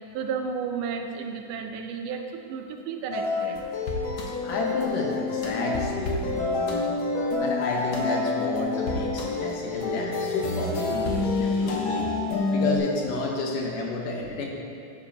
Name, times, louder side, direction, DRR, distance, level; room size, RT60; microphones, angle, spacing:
voice 1, 0.1-3.6, right 6 dB, 85° right, 4 dB, 2.3 m, -32 dB
sound 1, 3.1-12.8, left 3 dB, 65° left, 1.2 m, -28 dB
voice 2, 4.4-7.1 7.4-12.1 12.5-14.5, left 2 dB, 90° left, -1 dB, 2.8 m, -31 dB
11.0 x 9.2 x 2.9 m, 2.8 s
omnidirectional pair, 3.7 m